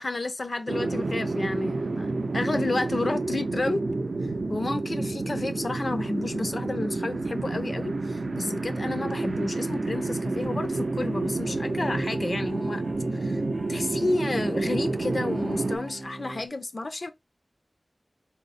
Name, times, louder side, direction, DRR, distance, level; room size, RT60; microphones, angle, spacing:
voice 1, 0.0-2.1 2.3-3.8 4.5-12.8 13.1-13.4 13.7-17.1, left 2 dB, 60° left, 0.4 m, -31 dB
sound 1, 0.7-15.8, right 3 dB, 90° right, 0.4 m, -29 dB
sound 2, 9.9-16.5, right 1 dB, 35° right, 0.5 m, -38 dB
3.6 x 2.0 x 4.0 m
wide cardioid pair, 70°, 0 cm